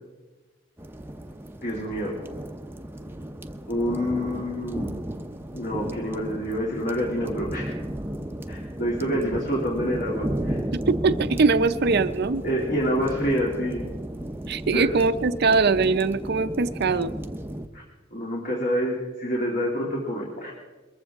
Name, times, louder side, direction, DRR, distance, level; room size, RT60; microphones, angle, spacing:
sound 1, 0.8-17.7, right 1 dB, 10° right, 0.6 m, -34 dB
voice 1, 1.6-2.1 3.7-4.9 5.5-7.7 8.5-10.6 12.4-13.8 14.7-14.9 17.7-17.8 18.1-20.5, equal, 45° left, -2 dB, 2.5 m, -27 dB
voice 2, 10.7-12.4 14.5-17.1, right 4 dB, 55° right, 12 dB, 0.6 m, -22 dB
22.0 x 14.5 x 3.6 m, 1.2 s
head